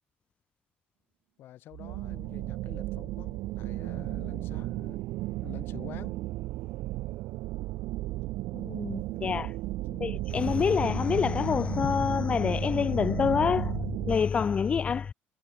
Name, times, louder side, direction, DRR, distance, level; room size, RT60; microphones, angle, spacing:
voice 1, 1.4-5.0 5.4-6.2 9.8-10.2, left 13 dB, 55° left, 1.0 m, -48 dB
sound 1, 1.7-14.2, right 18 dB, 75° right, 0.7 m, -34 dB
voice 2, 8.5-9.5 10.0-15.1, left 6 dB, 30° left, 0.5 m, -27 dB
cardioid pair, 150°, 4 cm